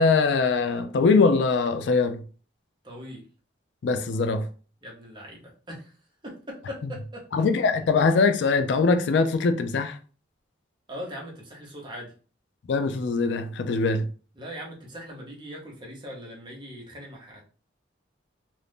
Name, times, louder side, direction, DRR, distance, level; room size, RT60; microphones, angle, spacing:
voice 1, 0.0-2.2 3.8-4.5 7.3-10.0 12.7-14.1, left 4 dB, 65° left, 0.4 m, -22 dB
voice 2, 2.8-3.3 4.8-5.9 6.2-7.2 10.9-12.1 14.4-17.4, equal, 25° right, 0.8 m, -40 dB
2.6 x 2.4 x 3.4 m
head